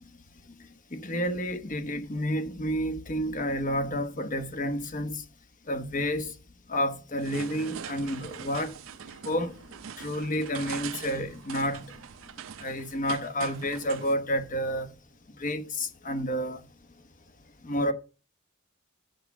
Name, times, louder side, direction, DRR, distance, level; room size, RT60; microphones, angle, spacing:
voice 1, 0.6-5.2 5.7-6.4 6.7-8.8 9.1-9.6 10.0-11.9 12.6-14.9 15.3-16.6 17.6-17.9, equal, 40° left, 1.0 m, -30 dB
sound 1, 7.1-14.1, right 7 dB, 80° right, 0.5 m, -42 dB
7.1 x 6.6 x 5.8 m
head